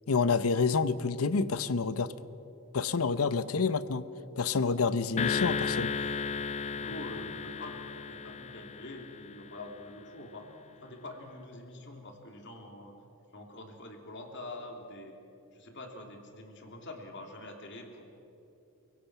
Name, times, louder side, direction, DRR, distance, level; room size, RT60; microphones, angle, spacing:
voice 1, 0.1-2.1 2.7-4.0 4.4-5.9, left 4 dB, 80° left, 15 dB, 0.7 m, -28 dB
sound 1, 5.2-9.6, left 5 dB, 30° left, 0.4 m, -34 dB
voice 2, 6.8-13.0 13.3-15.1 15.5-18.1, left 1 dB, 55° left, 3 dB, 2.8 m, -45 dB
29.5 x 17.0 x 5.9 m, 2.9 s
head